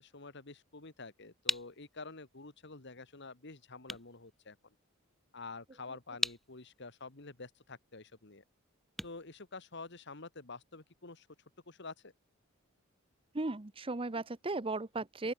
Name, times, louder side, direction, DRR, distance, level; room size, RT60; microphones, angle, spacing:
voice 1, 0.0-4.6 5.3-8.4 9.0-11.3 11.7-12.1, left 3 dB, 60° left, 2.0 m, -48 dB
sound 1, 0.8-10.2, equal, ahead, 1.3 m, -43 dB
voice 2, 13.3-15.3, right 2 dB, 25° right, 0.8 m, -36 dB
open air
head